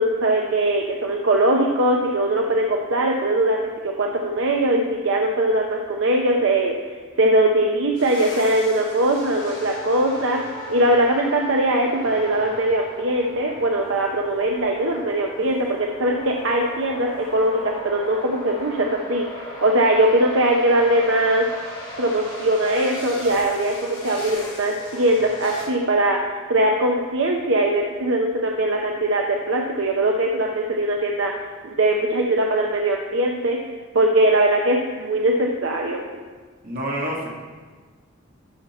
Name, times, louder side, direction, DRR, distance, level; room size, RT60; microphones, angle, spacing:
voice 1, 0.0-6.7 7.2-10.4 10.7-21.5 22.0-31.3 31.6-33.6 33.9-36.0, right 1 dB, 65° right, 1 dB, 0.7 m, -21 dB
sound 1, 7.9-25.6, equal, 25° left, 2.1 m, -36 dB
voice 2, 36.6-37.3, right 1 dB, 40° right, -3 dB, 1.9 m, -27 dB
11.5 x 5.7 x 4.4 m, 1.5 s
head